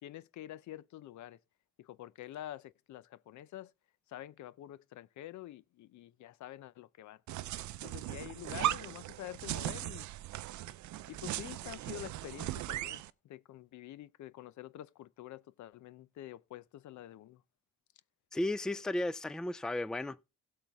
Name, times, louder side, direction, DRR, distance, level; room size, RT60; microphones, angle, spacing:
voice 1, 0.0-1.4 1.8-3.7 4.1-7.2 7.8-10.1 11.1-17.4, left 13 dB, 75° left, 0.6 m, -47 dB
sound 1, 7.3-13.1, right 14 dB, 70° right, 0.6 m, -38 dB
voice 2, 18.3-20.4, left 1 dB, ahead, 0.4 m, -34 dB
16.0 x 6.5 x 3.5 m
cardioid pair, 90°, 30 cm